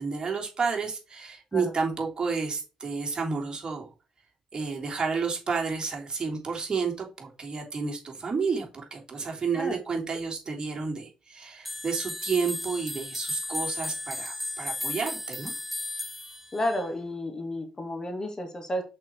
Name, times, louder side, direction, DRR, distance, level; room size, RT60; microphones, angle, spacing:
voice 1, 0.0-3.9 4.5-15.5, right 5 dB, 35° right, -1 dB, 3.3 m, -31 dB
sound 1, 11.6-16.9, left 1 dB, 5° right, 2.1 m, -35 dB
voice 2, 16.5-18.8, left 1 dB, 30° left, 4 dB, 2.4 m, -31 dB
6.0 x 4.8 x 4.7 m, 0.31 s
hypercardioid pair, 45°, 2 cm